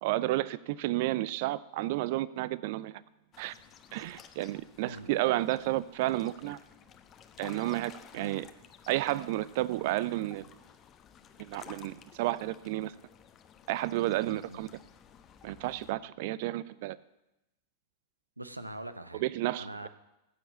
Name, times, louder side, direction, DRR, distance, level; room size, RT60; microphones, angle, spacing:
voice 1, 0.0-3.0 3.4-3.5 3.9-6.6 7.4-8.5 8.9-10.5 11.4-12.9 13.7-14.7 15.4-17.0 19.2-19.9, right 16 dB, 50° right, 19 dB, 0.5 m, -31 dB
sound 1, 3.3-15.9, left 8 dB, 30° left, 1.0 m, -54 dB
voice 2, 14.2-14.6 18.4-19.2 19.6-19.9, right 1 dB, 85° right, 11 dB, 0.9 m, -43 dB
15.0 x 7.8 x 8.4 m, 0.94 s
figure-of-eight pair, 90°, 0 cm